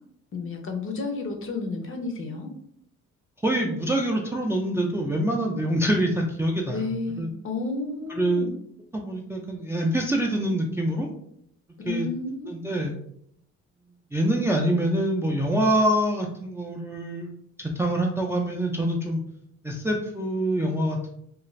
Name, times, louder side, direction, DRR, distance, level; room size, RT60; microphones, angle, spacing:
voice 1, 0.3-2.5 6.7-8.5 11.8-12.5, left 3 dB, 45° left, 3 dB, 0.6 m, -31 dB
voice 2, 3.4-6.9 7.2-7.3 8.2-8.5 8.9-11.1 11.9-12.1 12.5-12.9 14.1-19.2 19.6-21.1, right 1 dB, 10° right, 0 dB, 0.3 m, -25 dB
2.4 x 2.4 x 3.1 m, 0.71 s
cardioid pair, 90°, 30 cm